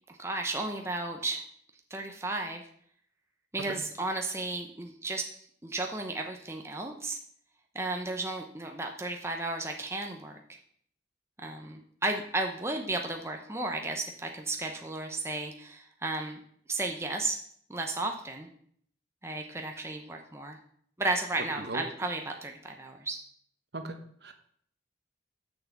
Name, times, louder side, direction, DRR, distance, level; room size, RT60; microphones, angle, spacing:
voice 1, 0.1-1.4 1.9-2.6 3.5-5.2 5.6-7.2 7.7-10.4 11.4-16.4 16.7-17.4 17.7-18.5 19.2-20.6 21.0-23.2, right 2 dB, 15° right, 3 dB, 0.8 m, -34 dB
voice 2, 23.7-24.3, right 2 dB, 60° right, 7 dB, 1.1 m, -38 dB
7.1 x 6.1 x 7.3 m, 0.63 s
head